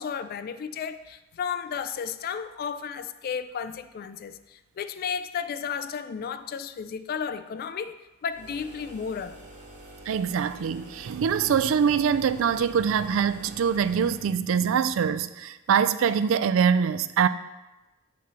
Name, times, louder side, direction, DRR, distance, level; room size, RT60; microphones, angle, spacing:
voice 1, 0.0-9.4, left 7 dB, 45° left, 0.3 m, -33 dB
sound 1, 8.3-14.3, right 1 dB, 40° right, 1.4 m, -47 dB
voice 2, 10.1-17.3, right 7 dB, 65° right, 0.3 m, -24 dB
8.1 x 3.1 x 6.1 m
head